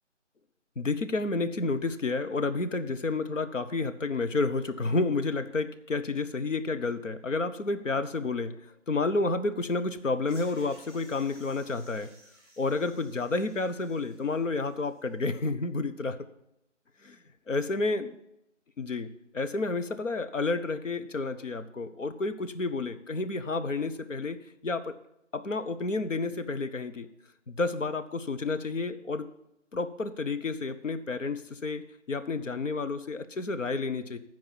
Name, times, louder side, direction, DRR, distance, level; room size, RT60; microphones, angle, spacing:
voice 1, 0.8-8.6 8.9-12.1 12.6-16.2 17.0-17.2 17.5-18.1 18.8-19.1 19.3-24.4 24.6-25.0 25.3-27.1 27.5-29.3 29.7-34.2, left 3 dB, 80° left, 9 dB, 0.9 m, -30 dB
sound 1, 10.3-15.0, equal, 15° left, 2.9 m, -57 dB
12.0 x 4.7 x 7.3 m, 0.82 s
figure-of-eight pair, 160°, 37 cm